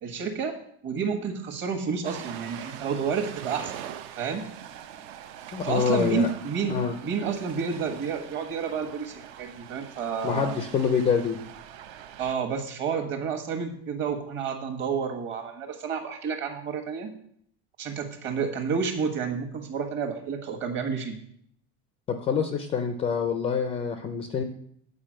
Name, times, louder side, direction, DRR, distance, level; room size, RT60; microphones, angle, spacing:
voice 1, 0.0-0.5 0.8-3.7 4.2-4.4 5.6-6.7 7.0-10.6 12.2-17.1 17.8-21.2, right 6 dB, 35° right, 4 dB, 1.4 m, -30 dB
Ocean, 2.0-12.4, right 10 dB, 60° right, 0.8 m, -43 dB
voice 2, 5.5-6.3 6.7-6.9 10.2-11.4 22.1-24.4, left 6 dB, 20° left, 7 dB, 0.4 m, -26 dB
8.7 x 5.1 x 7.5 m, 0.66 s
cardioid pair, 175°, 33 cm